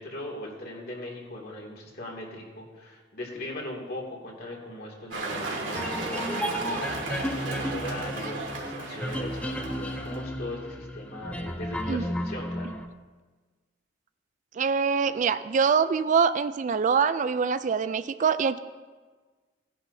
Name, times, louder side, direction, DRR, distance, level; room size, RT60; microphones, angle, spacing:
voice 1, 0.0-12.7, left 1 dB, 55° left, -2 dB, 2.6 m, -39 dB
sound 1, 5.1-10.2, right 2 dB, 80° right, 2.3 m, -34 dB
sound 2, 5.7-12.9, equal, 5° left, 0.6 m, -34 dB
voice 2, 14.5-18.6, right 6 dB, 40° right, 12 dB, 0.3 m, -24 dB
18.0 x 10.5 x 2.7 m, 1.4 s
head